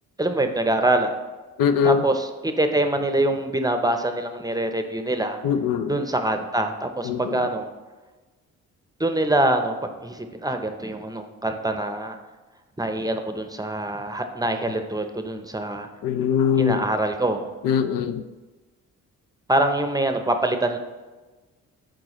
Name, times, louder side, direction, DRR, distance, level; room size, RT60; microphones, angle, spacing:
voice 1, 0.2-1.2 1.8-5.4 5.9-7.7 9.0-12.2 12.8-15.9 16.6-17.5 19.5-20.8, right 1 dB, 10° right, 6 dB, 0.7 m, -24 dB
voice 2, 1.6-2.0 5.4-6.0 7.0-7.4 16.0-16.9 17.6-18.2, left 7 dB, 70° left, 9 dB, 0.5 m, -22 dB
9.7 x 3.8 x 3.0 m, 1.2 s
supercardioid pair, 60°, 34 cm